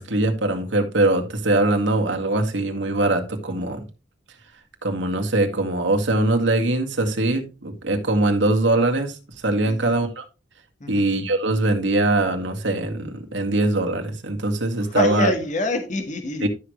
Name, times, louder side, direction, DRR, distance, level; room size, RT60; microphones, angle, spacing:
voice 1, 0.0-3.8 4.8-9.2 9.4-10.2 10.9-15.3 16.4-16.5, right 2 dB, 80° right, 2.0 m, -22 dB
voice 2, 14.8-16.5, left 2 dB, 40° left, 1.6 m, -26 dB
12.5 x 6.5 x 3.2 m
head